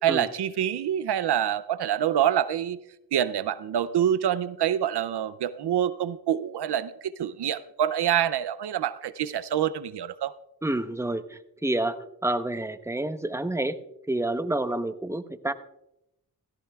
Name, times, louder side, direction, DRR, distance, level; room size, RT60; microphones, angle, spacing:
voice 1, 0.0-2.8 3.1-10.3, right 10 dB, 90° right, 15 dB, 0.5 m, -26 dB
voice 2, 10.6-12.0 12.2-13.8 14.1-15.5, right 1 dB, 5° right, 11 dB, 0.8 m, -28 dB
16.5 x 13.5 x 2.3 m, 0.84 s
cardioid pair, 40°, 39 cm